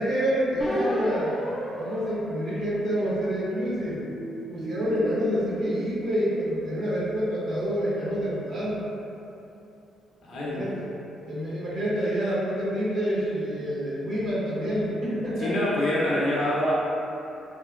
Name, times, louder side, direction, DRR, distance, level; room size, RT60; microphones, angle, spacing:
voice 1, 0.0-1.4 1.8-4.0 4.5-8.8 10.3-10.9 11.3-15.6, equal, 65° right, -9 dB, 1.0 m, -27 dB
sound 1, 0.6-3.3 3.9-6.4, equal, 10° left, 0.5 m, -34 dB
voice 2, 10.2-10.7 15.4-16.7, left 1 dB, 60° left, -7 dB, 0.5 m, -26 dB
3.0 x 2.1 x 2.3 m, 2.9 s
cardioid pair, 90°, 0 cm